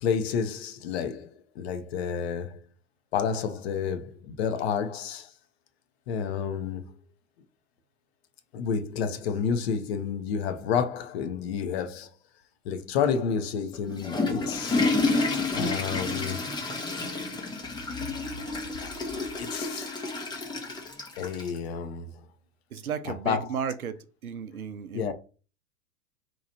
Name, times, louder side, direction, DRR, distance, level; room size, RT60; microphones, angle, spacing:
voice 1, 0.0-2.6 3.1-5.3 6.1-6.9 8.5-12.1 12.6-14.8 15.5-16.5 18.8-18.9 19.4-19.9 21.2-22.1 23.0-23.6 24.9-25.1, left 7 dB, 50° left, 0.7 m, -30 dB
Water / Toilet flush, 13.7-21.6, left 3 dB, 10° left, 0.6 m, -30 dB
voice 2, 22.7-24.0 24.2-25.1, right 7 dB, 85° right, 0.6 m, -34 dB
2.9 x 2.4 x 4.2 m
figure-of-eight pair, 95°, 42 cm